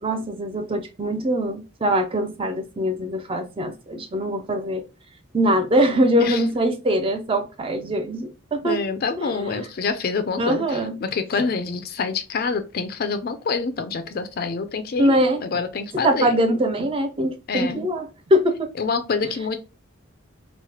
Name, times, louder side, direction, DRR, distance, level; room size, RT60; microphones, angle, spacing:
voice 1, 0.0-4.8 5.3-8.8 9.2-9.5 10.4-11.0 15.0-15.4 16.0-18.7, equal, 25° right, 0.4 m, -22 dB
voice 2, 8.6-16.4 17.5-17.9 18.8-19.6, left 4 dB, 45° left, 0.4 m, -26 dB
3.1 x 2.1 x 2.8 m
head